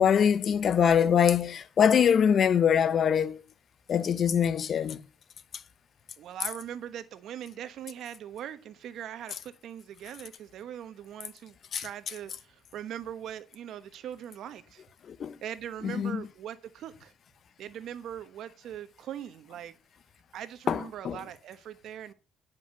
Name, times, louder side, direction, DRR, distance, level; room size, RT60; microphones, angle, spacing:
voice 1, 0.0-3.4 3.9-5.0 11.7-11.9 15.1-15.4 15.8-16.2 20.7-21.2, left 8 dB, 55° left, 0.8 m, -23 dB
voice 2, 6.2-14.8 15.4-17.1 17.6-19.8 20.3-22.1, right 10 dB, 70° right, 1.1 m, -41 dB
9.7 x 5.9 x 6.5 m
cardioid pair, 90°, 0 cm